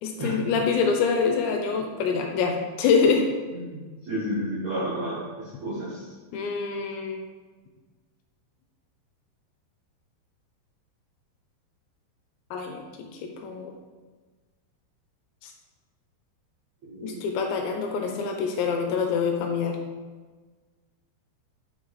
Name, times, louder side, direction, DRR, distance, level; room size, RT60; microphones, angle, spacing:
voice 1, 0.0-3.3 6.3-7.2 12.5-13.1 13.3-13.7 15.4-15.5 17.0-19.8, left 5 dB, 80° left, 3 dB, 2.8 m, -25 dB
voice 2, 3.5-6.1 16.8-17.2 18.0-18.1, equal, 60° right, -8 dB, 1.9 m, -32 dB
9.2 x 4.1 x 4.8 m, 1.4 s
omnidirectional pair, 5.3 m